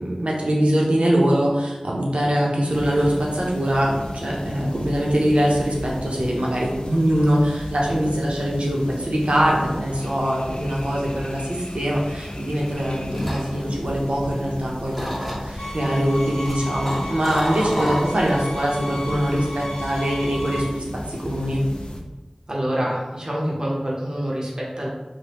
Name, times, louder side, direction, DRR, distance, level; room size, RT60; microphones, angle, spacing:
voice 1, 0.0-21.6, equal, 70° right, -3 dB, 0.7 m, -23 dB
sound 1, 2.7-22.0, left 1 dB, 50° left, 0.3 m, -35 dB
sound 2, 13.0-14.6 14.9-15.7 16.2-18.5 18.8-19.1, equal, 5° left, 0.7 m, -30 dB
sound 3, 15.6-20.6, left 1 dB, 65° left, 1.0 m, -34 dB
voice 2, 22.5-24.9, equal, 40° right, -4 dB, 0.6 m, -26 dB
3.2 x 2.1 x 2.9 m, 1.1 s
wide cardioid pair, 45°, 2 cm